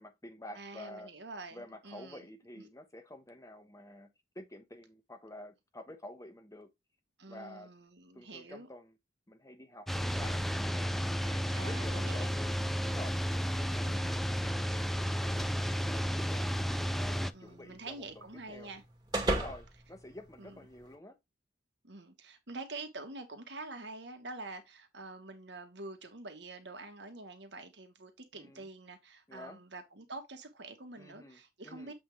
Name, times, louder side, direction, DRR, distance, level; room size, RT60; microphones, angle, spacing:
voice 1, 0.0-1.1 1.5-6.7 7.2-7.7 8.1-8.9 9.3-12.5 12.8-13.2 13.5-15.6 15.9-18.7 19.2-21.2 28.3-28.7 29.3-29.6 31.0-31.9, left 1 dB, 15° left, 1.1 m, -49 dB
voice 2, 0.5-2.3 7.2-8.7 11.5-12.3 13.8-14.2 17.3-18.8 19.1-19.5 20.4-20.6 21.8-31.9, right 2 dB, 70° right, 1.7 m, -46 dB
sound 1, 9.9-17.3, equal, ahead, 0.3 m, -32 dB
sound 2, 16.5-20.9, right 2 dB, 20° right, 1.9 m, -39 dB
7.9 x 3.6 x 4.9 m
head